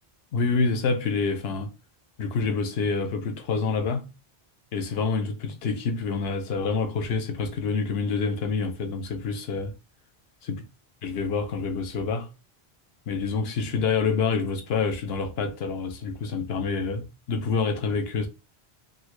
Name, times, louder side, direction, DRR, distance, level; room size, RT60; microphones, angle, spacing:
voice 1, 0.3-1.7 2.2-4.0 4.7-9.7 10.5-10.6 11.0-12.3 13.1-18.3, left 4 dB, 75° left, 0.9 m, -27 dB
3.6 x 2.1 x 3.0 m
omnidirectional pair, 1.0 m